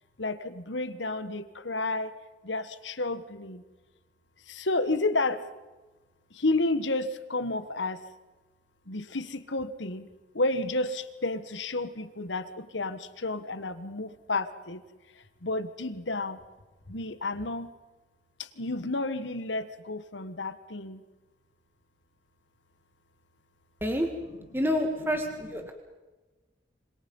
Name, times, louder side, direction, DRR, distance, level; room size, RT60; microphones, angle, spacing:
voice 1, 0.2-2.1 2.4-3.6 4.5-5.4 6.3-8.0 8.9-10.1 10.3-14.8 15.1-16.4 16.9-17.7 18.4-21.0, left 2 dB, 80° left, 12 dB, 1.5 m, -31 dB
voice 2, 24.5-25.7, equal, 10° right, 4 dB, 1.9 m, -28 dB
26.5 x 26.0 x 5.5 m, 1.2 s
head